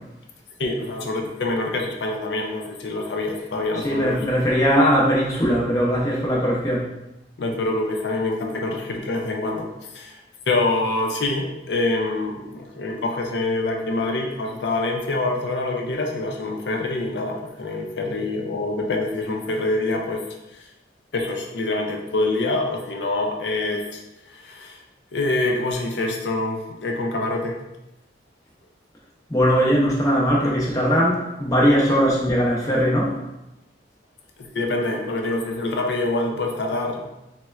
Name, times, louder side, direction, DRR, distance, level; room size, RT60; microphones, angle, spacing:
voice 1, 0.6-4.3 7.4-10.2 10.5-20.2 20.5-20.7 21.1-24.8 25.1-27.6 34.4-37.1, left 2 dB, 65° left, 2 dB, 0.5 m, -26 dB
voice 2, 3.8-6.8 29.3-33.2, equal, 20° left, -4 dB, 0.6 m, -20 dB
4.1 x 2.1 x 2.3 m, 0.94 s
head